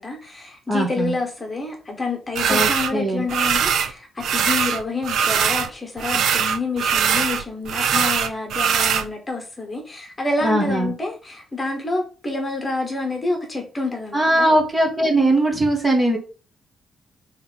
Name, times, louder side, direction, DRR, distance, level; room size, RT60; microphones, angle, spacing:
voice 1, 0.0-14.6, left 2 dB, 20° left, 3 dB, 1.3 m, -28 dB
voice 2, 0.7-1.1 2.5-3.3 10.4-10.9 14.1-16.2, right 1 dB, 20° right, 1 dB, 1.5 m, -20 dB
sound 1, 2.4-2.9 3.3-3.9 4.2-5.7 6.0-9.1, right 7 dB, 80° right, 0.6 m, -21 dB
5.8 x 3.2 x 5.3 m, 0.37 s
wide cardioid pair, 160°, 0 cm